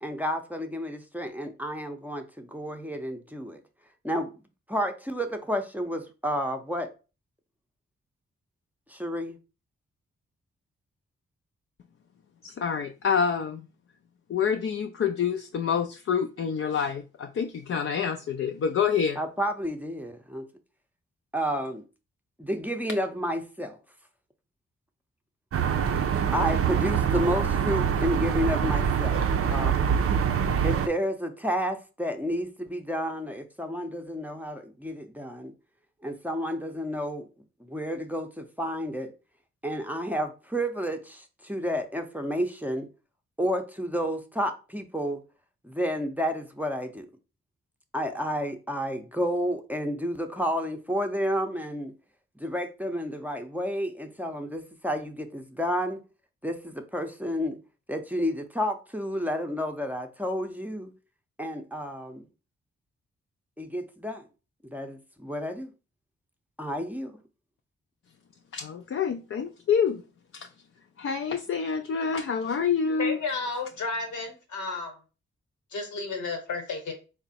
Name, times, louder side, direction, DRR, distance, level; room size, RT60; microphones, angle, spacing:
voice 1, 0.0-3.6 4.0-4.3 4.7-6.9 8.9-9.4 19.2-20.5 21.3-21.8 22.4-23.8 26.3-29.2 29.5-30.0 30.6-35.5 36.0-37.3 37.6-39.1 39.6-42.9 43.4-45.2 45.6-47.1 47.9-51.9 52.4-56.0 56.4-57.6 57.9-60.9 61.4-62.3 63.6-64.3 64.6-65.7 66.6-67.2, equal, 5° right, 0.6 m, -31 dB
voice 2, 12.4-13.6 14.3-19.2 68.5-70.0 70.3-70.5 71.0-73.2, left 6 dB, 50° left, 0.4 m, -27 dB
sound 1, 25.5-30.9, right 7 dB, 50° right, 0.5 m, -25 dB
voice 3, 73.0-74.9 75.7-76.9, left 4 dB, 85° left, 1.0 m, -32 dB
3.5 x 2.1 x 4.1 m
supercardioid pair, 45°, 29 cm